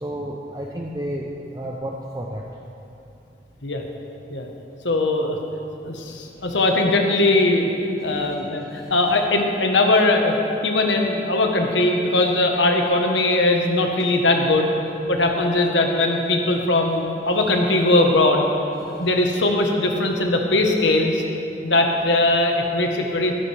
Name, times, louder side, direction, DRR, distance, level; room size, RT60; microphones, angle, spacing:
voice 1, 0.0-2.4 8.8-8.9, right 1 dB, 20° right, -2 dB, 0.7 m, -31 dB
voice 2, 4.8-5.4 5.8-7.7 8.0-10.4 10.6-14.7 15.1-18.4 19.0-21.2 21.6-23.3, left 2 dB, 85° left, 2 dB, 1.3 m, -20 dB
14.5 x 12.5 x 3.5 m, 2.8 s
head